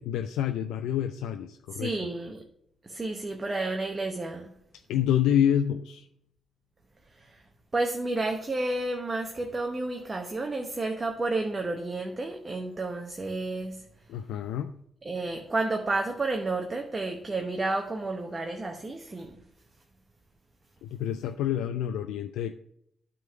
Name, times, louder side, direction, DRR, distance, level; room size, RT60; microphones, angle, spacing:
voice 1, 0.0-1.9 4.9-6.1 14.1-14.7 20.8-22.5, left 10 dB, 85° left, 0.3 m, -27 dB
voice 2, 1.7-2.4 2.8-4.5 7.1-7.4 7.7-13.8 15.0-19.4, right 2 dB, 30° right, 0.9 m, -31 dB
9.1 x 3.8 x 5.8 m
supercardioid pair, 60°, 0 cm